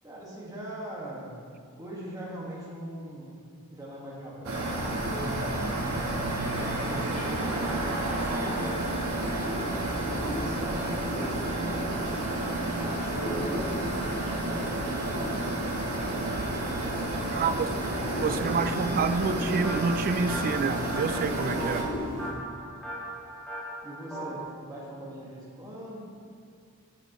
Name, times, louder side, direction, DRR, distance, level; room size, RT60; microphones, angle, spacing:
voice 1, 0.0-1.4 1.7-3.4 3.7-5.6 6.5-8.9 10.0-15.8 16.8-19.1 23.8-26.0, right 1 dB, 15° right, 1.8 m, -41 dB
sound 1, 4.4-21.8, right 1 dB, 75° right, 1.3 m, -31 dB
sound 2, 6.5-22.3, equal, 85° left, 1.9 m, -39 dB
voice 2, 18.2-21.8, right 4 dB, 40° right, 0.3 m, -28 dB
sound 3, 19.6-24.4, right 1 dB, 5° left, 1.9 m, -39 dB
9.7 x 7.9 x 3.1 m
head